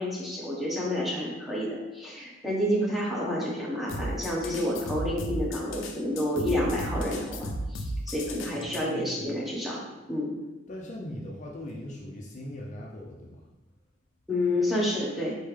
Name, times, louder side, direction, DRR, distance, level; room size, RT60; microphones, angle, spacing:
voice 1, 0.0-10.3 14.3-15.4, left 1 dB, ahead, -5 dB, 1.0 m, -29 dB
sound 1, 3.9-8.8, equal, 85° left, 0.5 m, -34 dB
voice 2, 8.5-9.3 10.7-13.4, equal, 40° left, -2 dB, 0.5 m, -40 dB
4.3 x 3.3 x 3.3 m, 1.1 s
head